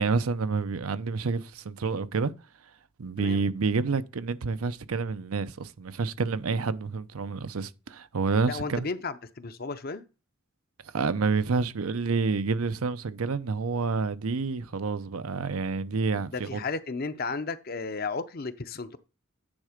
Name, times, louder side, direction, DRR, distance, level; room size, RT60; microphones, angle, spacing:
voice 1, 0.0-2.3 3.0-8.9 10.9-16.6, right 4 dB, 85° right, 0.6 m, -28 dB
voice 2, 8.5-10.0 16.3-19.0, left 4 dB, 45° left, 0.6 m, -34 dB
9.8 x 3.7 x 5.0 m
head